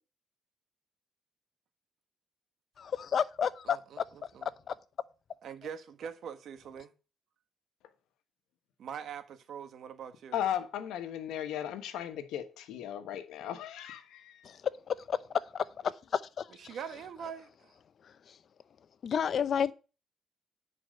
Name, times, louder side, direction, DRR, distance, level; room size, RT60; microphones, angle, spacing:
voice 1, 2.8-4.0 4.4-4.7 14.4-14.6 14.9-15.2 15.5-16.5 18.0-18.1 19.0-19.7, left 7 dB, 55° left, 0.7 m, -31 dB
voice 2, 3.6-4.5 5.4-6.9 8.8-10.4 16.6-17.7, right 8 dB, 70° right, 1.4 m, -43 dB
voice 3, 10.3-14.6, left 10 dB, 90° left, 1.2 m, -36 dB
10.0 x 4.7 x 6.3 m
cardioid pair, 90°, 0 cm